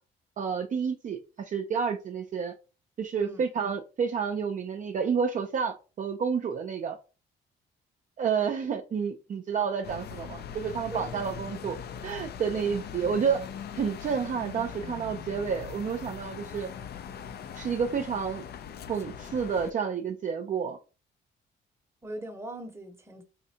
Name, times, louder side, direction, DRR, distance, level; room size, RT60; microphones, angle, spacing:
voice 1, 0.4-2.5 3.0-7.0 8.2-11.8 12.0-13.5 13.8-16.7 17.5-18.4 18.9-20.8, right 6 dB, 40° right, 0.4 m, -30 dB
sound 1, 9.8-19.7, left 8 dB, 55° left, 0.4 m, -41 dB
voice 2, 22.0-23.2, right 1 dB, 15° right, 0.8 m, -40 dB
4.2 x 2.5 x 2.8 m
cardioid pair, 90°, 20 cm